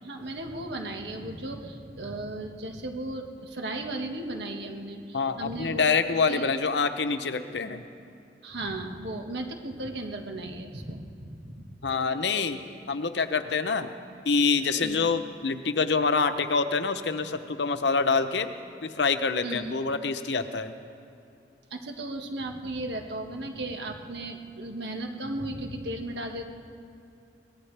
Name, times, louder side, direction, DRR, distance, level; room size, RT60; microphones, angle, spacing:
voice 1, 0.0-5.9 6.3-6.5 8.4-11.5 14.8-15.0 19.4-19.7 21.7-26.4, right 1 dB, 80° right, 3 dB, 1.7 m, -35 dB
voice 2, 5.1-7.8 11.8-12.6 12.9-13.9 14.2-18.5 18.8-20.7, left 4 dB, 85° left, 10 dB, 0.8 m, -26 dB
23.0 x 18.5 x 3.4 m, 2.7 s
head